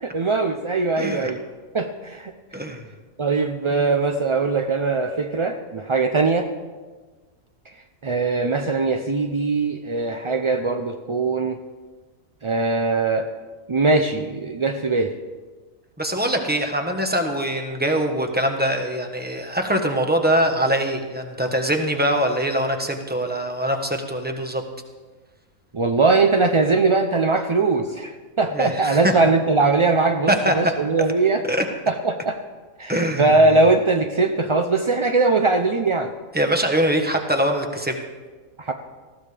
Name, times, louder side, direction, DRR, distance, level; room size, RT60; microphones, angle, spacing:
voice 1, 0.0-1.4 1.7-2.3 3.2-6.5 8.0-11.6 12.4-13.3 13.7-15.1 25.7-31.4 31.9-32.4 32.8-36.1 38.6-38.7, right 3 dB, 45° right, 5 dB, 0.3 m, -21 dB
voice 2, 1.0-1.3 2.5-2.8 3.7-3.9 16.0-24.6 28.5-29.1 30.3-30.5 31.5-31.6 32.9-33.6 36.3-38.0, equal, 10° right, 4 dB, 1.1 m, -23 dB
19.5 x 15.0 x 3.4 m, 1.4 s
omnidirectional pair, 1.4 m